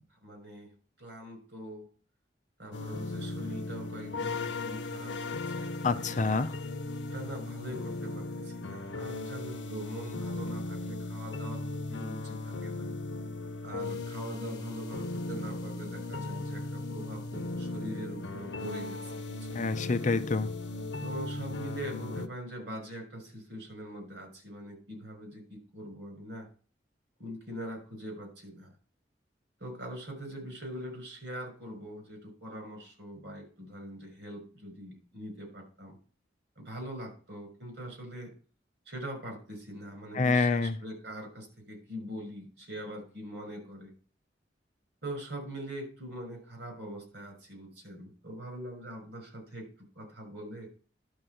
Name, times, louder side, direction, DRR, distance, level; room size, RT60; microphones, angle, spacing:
voice 1, 0.2-0.7 1.0-1.9 2.6-5.7 6.1-6.2 7.1-12.9 13.6-19.7 21.0-26.5 27.2-28.7 29.6-36.0 36.6-38.3 38.9-43.9 45.0-49.7 50.0-50.7, equal, 70° right, 3 dB, 5.5 m, -42 dB
sound 1, 2.7-22.3, left 2 dB, 85° left, 0.8 m, -37 dB
voice 2, 5.8-6.6 19.5-20.5 40.1-40.8, left 3 dB, 45° left, 11 dB, 0.6 m, -27 dB
11.0 x 4.1 x 7.7 m, 0.40 s
head